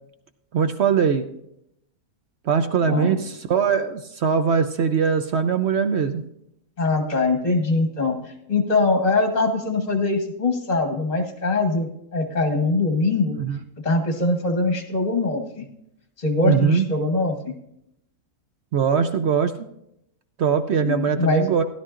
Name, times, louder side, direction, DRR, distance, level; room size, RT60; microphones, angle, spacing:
voice 1, 0.5-1.3 2.4-6.2 13.4-13.6 16.4-16.8 18.7-19.6 20.4-21.6, right 6 dB, 65° right, 8 dB, 0.7 m, -21 dB
voice 2, 2.9-3.2 6.8-13.4 13.8-15.7 16.2-17.5 20.8-21.5, left 3 dB, 30° left, 4 dB, 1.0 m, -22 dB
16.0 x 11.5 x 2.5 m, 0.77 s
omnidirectional pair, 1.7 m